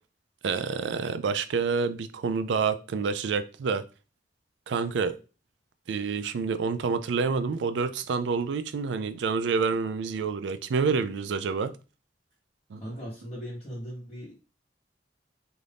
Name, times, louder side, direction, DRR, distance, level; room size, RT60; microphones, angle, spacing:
voice 1, 0.4-3.8 4.7-5.2 5.9-11.7 12.7-12.8, right 5 dB, 90° right, 0.4 m, -28 dB
voice 2, 12.8-14.4, equal, 30° left, 1.1 m, -38 dB
2.7 x 2.5 x 3.4 m
head